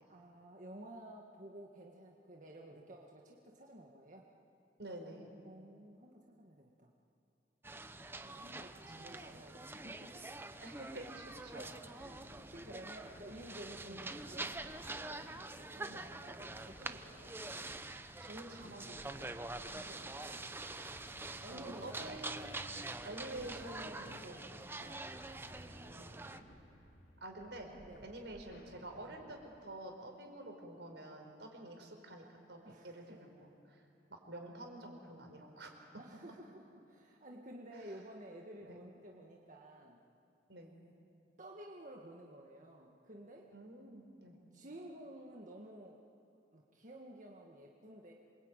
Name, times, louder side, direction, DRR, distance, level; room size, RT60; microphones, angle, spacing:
voice 1, 0.1-4.3 5.4-6.9 8.2-10.1 12.5-15.3 15.6-17.3 19.7-20.4 21.4-22.2 24.8-25.1 25.5-26.4 27.8-28.1 32.6-33.2 36.0-40.0 41.4-43.5 44.5-46.0 46.5-48.1, right 1 dB, 45° right, -1 dB, 1.9 m, -53 dB
voice 2, 4.8-5.3 8.9-9.2 10.6-12.2 13.8-14.0 15.9-16.0 18.2-19.3 21.5-22.6 23.0-24.4 24.7-25.0 26.0-26.1 27.2-27.7 28.0-33.8 34.1-35.9 37.7-37.9 38.6-38.8 40.5-40.7 43.5-44.4, right 1 dB, 80° right, 3 dB, 4.9 m, -49 dB
sound 1, 7.6-26.4, right 2 dB, 15° right, 0.8 m, -46 dB
sound 2, 12.0-29.6, equal, 65° left, 3.2 m, -60 dB
27.5 x 23.5 x 9.1 m, 2.6 s
head